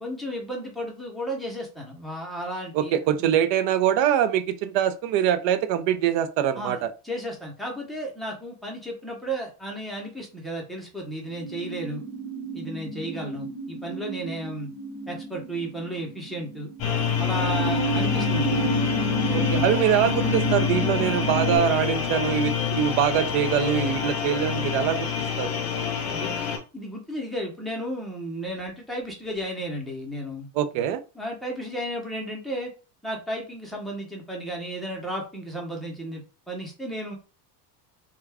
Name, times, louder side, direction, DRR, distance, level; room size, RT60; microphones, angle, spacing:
voice 1, 0.0-3.4 6.6-12.0 12.5-14.7 15.1-16.7 17.2-18.7 19.4-19.7 26.1-26.4 26.7-30.5 31.1-32.7 33.0-36.2 36.5-37.2, equal, ahead, 0.7 m, -34 dB
voice 2, 2.7-6.9 19.3-25.1 25.4-25.6 30.5-31.0, right 10 dB, 65° right, 0.5 m, -23 dB
sound 1, 11.3-21.6, right 4 dB, 45° right, 1.2 m, -31 dB
sound 2, 16.8-26.6, left 7 dB, 45° left, 0.8 m, -26 dB
2.3 x 2.3 x 3.3 m
cardioid pair, 140°, 48 cm